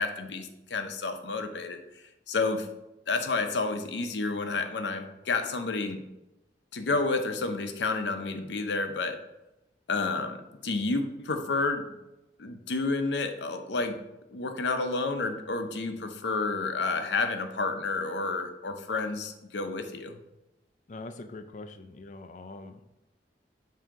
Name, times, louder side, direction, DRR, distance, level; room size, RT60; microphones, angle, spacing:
voice 1, 0.0-1.8 2.3-2.7 3.1-6.0 6.7-9.2 9.9-11.9 12.4-14.0 14.3-20.2, left 3 dB, 80° left, 7 dB, 0.7 m, -30 dB
voice 2, 20.9-22.9, left 2 dB, 45° left, 8 dB, 0.4 m, -43 dB
7.6 x 2.8 x 4.6 m, 0.93 s
head